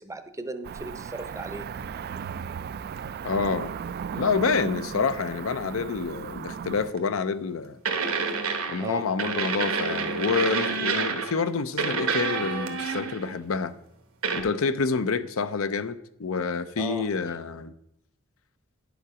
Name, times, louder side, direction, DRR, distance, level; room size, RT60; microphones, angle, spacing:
voice 1, 0.0-1.7 8.8-9.1 16.8-17.1, right 2 dB, 15° right, 10 dB, 0.6 m, -36 dB
Cricket / Motor vehicle (road), 0.6-6.9, right 7 dB, 50° right, 0.3 m, -36 dB
voice 2, 3.2-3.7 4.2-7.8 8.7-13.7 14.3-17.7, left 5 dB, 70° left, 13 dB, 0.6 m, -28 dB
sound 1, 7.0-7.1 7.9-8.9 9.2-11.4 11.8-13.3 14.2-14.4, right 5 dB, 80° right, 1.2 m, -28 dB
10.0 x 7.0 x 4.9 m, 0.77 s
head